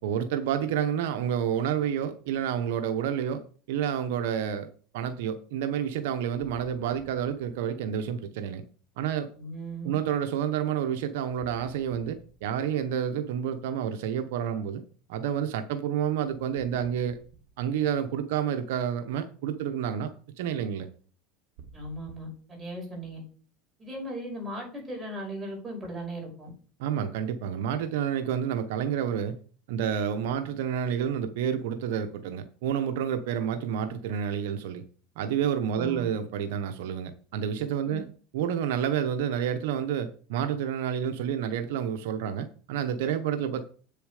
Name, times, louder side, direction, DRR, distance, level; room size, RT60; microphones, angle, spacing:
voice 1, 0.0-4.7 4.9-8.6 9.0-9.3 9.8-14.8 15.1-17.2 17.6-20.1 20.4-20.9 26.8-29.4 29.7-34.8 35.2-38.1 38.3-43.6, right 9 dB, 80° right, 8 dB, 0.9 m, -29 dB
voice 2, 9.4-10.0 21.7-23.2 23.8-26.5 35.8-36.1 37.8-38.0, right 1 dB, 20° right, 0 dB, 5.6 m, -37 dB
sound 1, 16.5-18.6 21.6-22.2, right 5 dB, 60° right, 2.2 m, -53 dB
8.3 x 6.8 x 4.9 m, 0.42 s
supercardioid pair, 115°, 0 cm